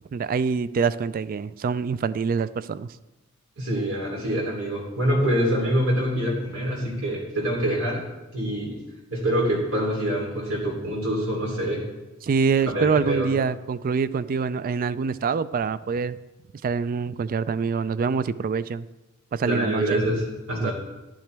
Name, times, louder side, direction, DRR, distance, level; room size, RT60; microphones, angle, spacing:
voice 1, 0.1-2.9 12.2-16.2 16.6-18.9 19.3-20.0 20.6-20.7, right 5 dB, 40° right, 17 dB, 0.3 m, -25 dB
voice 2, 3.6-8.0 8.3-8.8 9.1-11.8 12.7-13.3 19.4-20.7, equal, 85° right, -2 dB, 3.2 m, -25 dB
12.0 x 11.0 x 3.4 m, 1.1 s
head